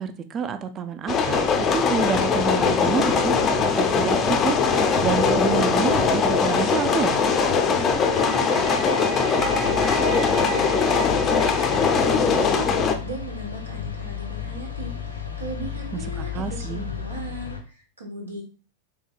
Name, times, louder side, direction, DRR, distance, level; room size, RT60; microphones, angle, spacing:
voice 1, 0.0-1.5 1.7-7.3 16.2-16.9, right 6 dB, 30° right, 10 dB, 0.4 m, -28 dB
sound 1, 1.1-13.0, left 5 dB, 25° left, 0.5 m, -21 dB
voice 2, 7.7-18.4, right 2 dB, 75° right, -1 dB, 1.1 m, -38 dB
sound 2, 7.9-12.9, right 3 dB, 55° right, 1.1 m, -34 dB
sound 3, 9.3-17.6, left 8 dB, 85° left, 0.6 m, -34 dB
3.8 x 3.3 x 2.3 m, 0.35 s
figure-of-eight pair, 90°, 0 cm